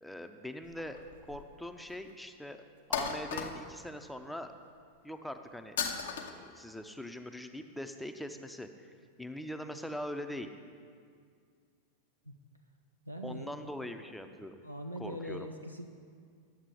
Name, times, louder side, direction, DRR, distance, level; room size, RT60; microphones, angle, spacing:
voice 1, 0.0-1.0 1.3-2.6 2.9-4.5 5.0-5.8 6.2-8.9 9.2-10.5 13.2-14.6 15.0-15.5, left 1 dB, 5° left, 7 dB, 0.6 m, -42 dB
sound 1, 0.7-1.6 1.9-2.0 2.9-3.9 5.8-6.3, left 6 dB, 60° left, 0.8 m, -35 dB
voice 2, 13.1-13.6 14.6-15.9, equal, 90° right, 3 dB, 0.5 m, -41 dB
10.5 x 7.4 x 4.9 m, 2.1 s
figure-of-eight pair, 90°, 0 cm